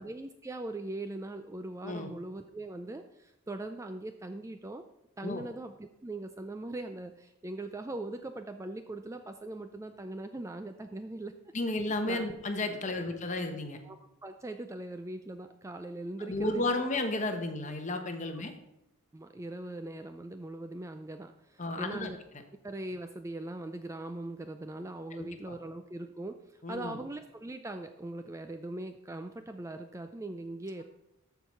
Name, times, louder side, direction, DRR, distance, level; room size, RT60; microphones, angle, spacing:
voice 1, 0.0-4.8 5.2-11.5 12.0-12.3 13.0-13.1 13.4-13.5 13.8-16.8 18.3-18.4 19.1-22.2 22.6-30.8, right 2 dB, 15° right, 8 dB, 0.3 m, -41 dB
voice 2, 11.5-13.8 16.3-18.5 21.6-22.1 25.2-25.5 26.6-27.0, left 2 dB, 35° left, 5 dB, 1.1 m, -33 dB
13.5 x 4.7 x 5.6 m, 0.88 s
head